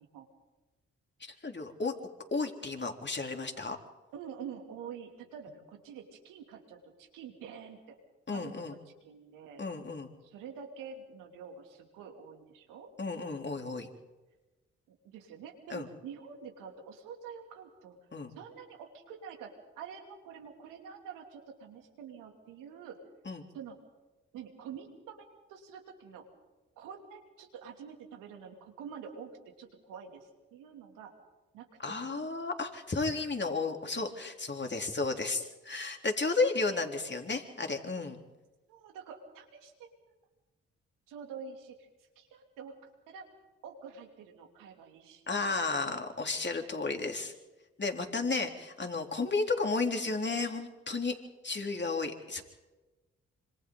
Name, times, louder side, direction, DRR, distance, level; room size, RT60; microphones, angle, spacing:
voice 1, 1.2-1.9 2.3-3.8 8.3-8.8 9.6-10.1 13.0-13.9 15.7-15.9 18.1-18.3 23.3-23.4 31.8-38.2 45.3-47.3 47.8-51.1 51.4-52.4, left 3 dB, 35° left, 4 dB, 3.6 m, -33 dB
voice 2, 4.1-8.0 8.3-9.6 10.2-12.9 14.9-18.0 18.4-23.0 23.5-23.8 24.3-26.3 26.8-29.3 29.6-31.1 31.5-31.7 32.0-32.3 37.0-37.2 38.7-39.9 41.1-41.8 42.2-42.7 43.1-43.3 43.6-45.8, right 7 dB, 85° right, 3 dB, 2.9 m, -47 dB
26.5 x 26.0 x 4.0 m, 1.1 s
hypercardioid pair, 40°, 32 cm